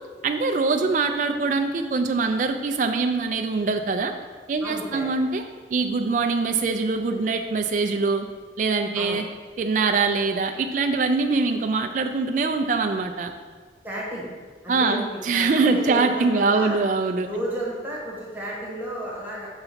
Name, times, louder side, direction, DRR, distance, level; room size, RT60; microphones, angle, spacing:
voice 1, 0.2-4.1 4.5-5.4 5.7-8.3 8.6-9.3 9.6-13.3 14.7-17.3, right 4 dB, 45° right, 5 dB, 0.3 m, -23 dB
voice 2, 4.6-5.1 8.9-9.2 13.8-14.3 14.6-16.8 17.2-19.5, right 1 dB, 10° right, -4 dB, 1.2 m, -32 dB
5.6 x 3.9 x 5.7 m, 1.5 s
head